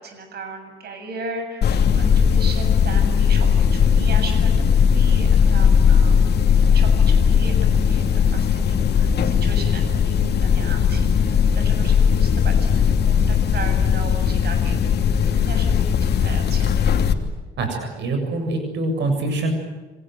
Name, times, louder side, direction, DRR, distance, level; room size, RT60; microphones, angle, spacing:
voice 1, 0.0-6.2 6.6-7.6 7.8-16.9, right 3 dB, 65° right, 5 dB, 7.4 m, -36 dB
sound 1, 1.6-17.1, left 7 dB, 65° left, 2.9 m, -18 dB
voice 2, 17.6-19.5, right 2 dB, 85° right, 5 dB, 7.3 m, -24 dB
28.5 x 26.5 x 7.8 m, 1.3 s
cardioid pair, 130°, 18 cm